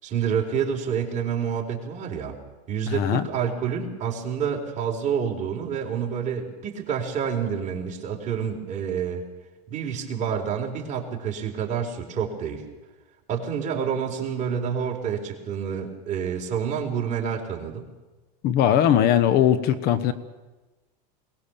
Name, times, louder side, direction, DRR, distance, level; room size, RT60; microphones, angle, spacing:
voice 1, 0.0-2.4 2.7-9.2 9.7-12.7 13.3-17.9, right 7 dB, 35° right, 1 dB, 4.0 m, -28 dB
voice 2, 2.9-3.2 18.4-20.1, left 10 dB, 50° left, 14 dB, 1.2 m, -20 dB
22.5 x 19.5 x 7.1 m, 1.2 s
supercardioid pair, 130°, 21 cm